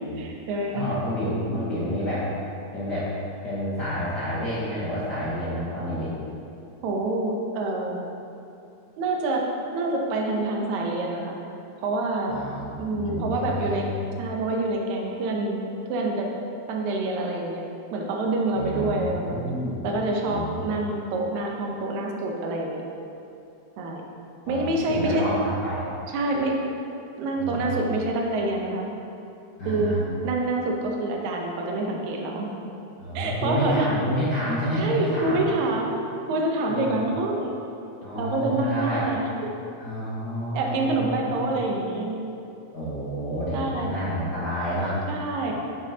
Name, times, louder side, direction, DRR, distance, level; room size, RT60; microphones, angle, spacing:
voice 1, 0.2-0.8 6.8-8.0 9.0-9.4 9.7-11.4 11.8-12.3 12.8-13.9 14.2-15.6 15.9-16.3 16.7-17.6 17.9-19.6 19.8-22.8 23.8-24.0 24.5-25.3 26.1-26.5 27.2-28.9 29.7-29.9 30.2-32.5 33.1-33.9 34.8-36.0 36.3-37.6 38.2-39.3 40.5-42.2 43.5-43.9 45.1-45.5, right 2 dB, 70° right, 0 dB, 2.0 m, -26 dB
voice 2, 0.7-2.3 2.7-3.1 3.4-6.1 12.3-13.9 18.5-19.8 20.3-20.6 24.5-25.9 27.4-27.9 29.6-30.0 33.0-35.4 36.7-37.0 38.0-39.1 39.8-41.4 42.7-45.0, equal, 75° left, -10 dB, 0.9 m, -29 dB
9.6 x 6.1 x 2.8 m, 2.7 s
omnidirectional pair, 3.7 m